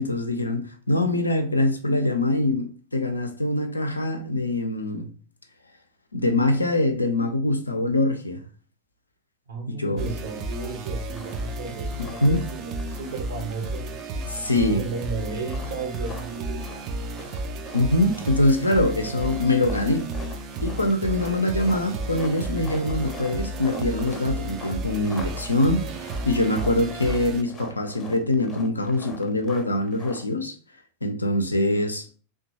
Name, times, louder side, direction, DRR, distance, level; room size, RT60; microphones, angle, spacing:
voice 1, 0.0-5.1 6.1-8.4 9.7-10.0 12.0-12.4 14.2-14.8 17.7-20.1 20.6-30.6 31.0-32.1, left 1 dB, 80° left, 0.4 m, -24 dB
voice 2, 9.5-14.0 14.7-16.6, right 4 dB, 60° right, 0.7 m, -34 dB
sound 1, 10.0-27.4, right 2 dB, 35° right, 0.3 m, -33 dB
sound 2, 11.1-11.6 11.9-13.4 13.7-14.8 15.4-30.2, left 1 dB, 15° left, 0.6 m, -43 dB
2.9 x 2.2 x 2.6 m
figure-of-eight pair, 90°, 0 cm